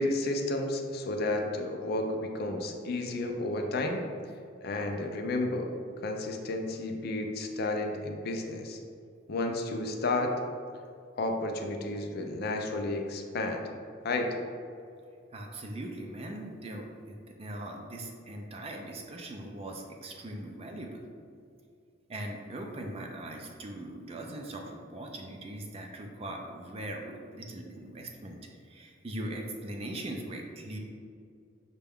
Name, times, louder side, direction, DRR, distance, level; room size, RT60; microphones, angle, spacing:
voice 1, 0.0-4.0 4.6-5.7 6.0-8.8 9.3-10.3 11.2-13.6 14.0-14.4, left 2 dB, 50° left, 3 dB, 0.4 m, -32 dB
voice 2, 15.3-21.0 22.1-28.4 28.6-30.8, right 1 dB, 30° right, 2 dB, 0.4 m, -40 dB
5.8 x 2.2 x 3.5 m, 2.3 s
head